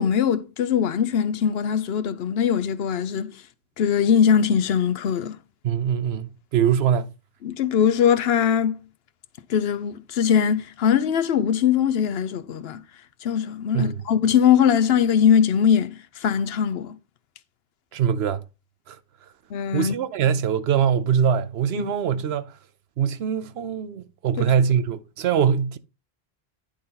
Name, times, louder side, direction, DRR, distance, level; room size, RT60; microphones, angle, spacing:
voice 1, 0.0-3.3 3.8-5.4 7.4-8.8 9.5-12.8 13.2-17.0 19.5-20.0 21.8-21.9 24.4-24.5, left 8 dB, 75° left, 0.9 m, -21 dB
voice 2, 5.6-7.1 13.7-14.0 17.9-18.4 18.9-19.0 19.7-22.5 23.0-25.8, right 8 dB, 80° right, 0.9 m, -23 dB
10.0 x 4.1 x 3.8 m
omnidirectional pair, 1.1 m